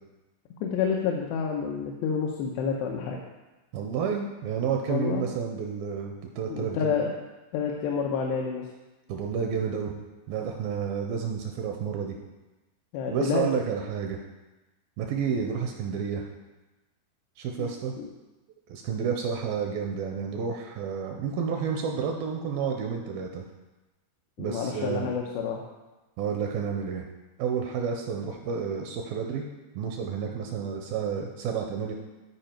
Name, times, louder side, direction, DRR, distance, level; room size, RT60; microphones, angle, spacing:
voice 1, 0.6-3.2 4.9-5.3 6.5-7.1 7.5-8.7 12.9-13.7 17.6-17.7 18.0-18.1 24.4-25.6, left 6 dB, 85° left, 0 dB, 2.9 m, -29 dB
voice 2, 3.7-6.9 9.1-9.9 10.3-12.2 13.1-14.2 15.0-16.2 17.4-17.9 18.7-23.5 24.4-25.1 26.2-27.1 27.4-29.5 29.8-31.9, right 6 dB, 85° right, 2 dB, 2.2 m, -30 dB
13.0 x 4.9 x 4.5 m, 1.1 s
omnidirectional pair, 4.7 m